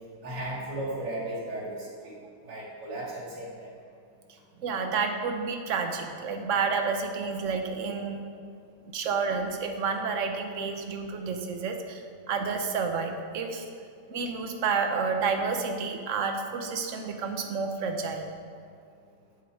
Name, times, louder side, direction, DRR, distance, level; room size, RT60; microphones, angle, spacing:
voice 1, 0.2-2.2 2.5-3.7, right 1 dB, 75° right, -5 dB, 2.9 m, -35 dB
voice 2, 4.6-8.2 8.9-12.0 12.3-13.7 14.1-18.3, right 5 dB, 55° right, 4 dB, 1.0 m, -30 dB
8.3 x 7.1 x 4.7 m, 2.3 s
omnidirectional pair, 1.9 m